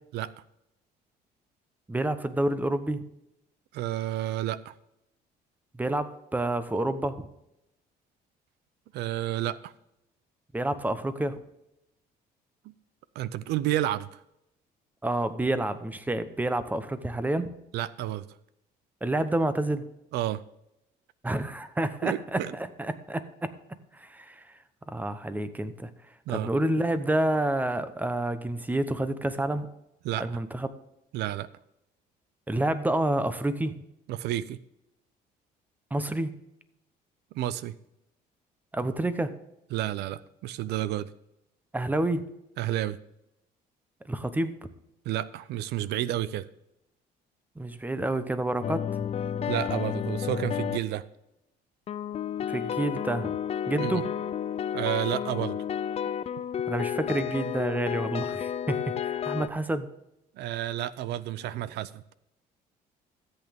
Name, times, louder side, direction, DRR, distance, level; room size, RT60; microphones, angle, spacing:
voice 1, 1.9-3.0 5.7-7.3 10.5-11.4 15.0-17.5 19.0-19.9 21.2-23.5 23.9-24.5 24.9-25.9 26.3-29.7 30.2-30.7 32.5-33.8 35.9-36.3 38.7-39.3 41.7-42.3 44.0-44.6 47.6-48.9 52.5-53.4 53.7-54.1 56.7-59.9, right 1 dB, 10° right, 11 dB, 0.9 m, -29 dB
voice 2, 3.7-4.7 8.9-9.7 13.2-14.2 17.7-18.2 20.1-20.4 22.0-22.5 26.3-26.5 30.0-30.3 31.1-31.5 34.1-34.6 37.3-37.8 39.7-41.1 42.6-43.0 45.1-46.5 49.4-51.0 53.8-54.0 54.7-55.6 60.4-62.0, right 13 dB, 80° right, 17 dB, 0.6 m, -30 dB
sound 1, 48.6-51.0 51.9-59.5, left 9 dB, 40° left, 0.4 m, -31 dB
13.5 x 8.3 x 3.6 m, 0.84 s
cardioid pair, 110°, 17 cm